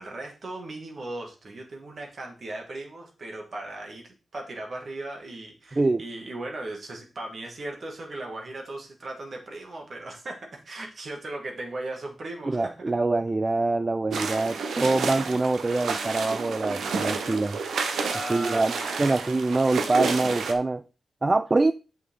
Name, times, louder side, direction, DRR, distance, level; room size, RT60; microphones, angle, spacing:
voice 1, 0.0-12.9 18.0-19.1, right 2 dB, 55° right, 2.4 m, -37 dB
voice 2, 5.7-6.0 12.5-17.6 18.3-20.8 21.2-21.7, right 3 dB, 30° right, 0.3 m, -24 dB
sound 1, 14.1-20.5, right 4 dB, 90° right, 1.1 m, -30 dB
8.1 x 5.9 x 3.9 m
cardioid pair, 85°, 0 cm